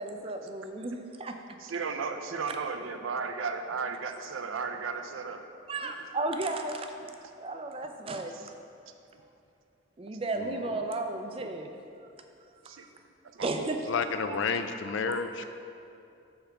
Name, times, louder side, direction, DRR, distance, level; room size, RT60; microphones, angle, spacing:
voice 1, 0.0-1.3 5.7-6.9 7.4-8.5 10.0-11.7 12.7-12.9 13.4-13.8 14.3-14.5 15.1-15.2, right 2 dB, 25° right, 5 dB, 0.4 m, -34 dB
voice 2, 1.6-5.4 5.8-5.9 8.3-8.4 11.4-11.5 12.7-12.8 13.3-13.7 14.3-14.4, right 5 dB, 80° right, 7 dB, 0.5 m, -35 dB
voice 3, 10.4-10.8 13.9-15.4, left 5 dB, 70° left, 9 dB, 0.4 m, -31 dB
8.6 x 3.4 x 5.8 m, 2.6 s
head